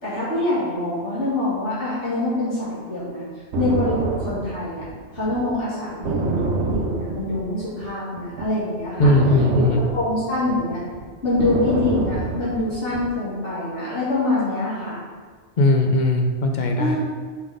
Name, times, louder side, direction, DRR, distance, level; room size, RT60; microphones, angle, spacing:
voice 1, 0.0-3.2 3.6-4.8 5.1-9.1 9.5-9.6 9.9-10.8 11.2-15.0 16.8-17.0, left 2 dB, 85° left, -10 dB, 2.5 m, -25 dB
sound 1, 3.5-7.9 8.2-13.1, right 4 dB, 80° right, 0.9 m, -27 dB
voice 2, 9.0-9.8 15.6-17.0, left 2 dB, 50° left, 3 dB, 0.6 m, -18 dB
5.6 x 4.0 x 4.9 m, 1.5 s
omnidirectional pair, 1.2 m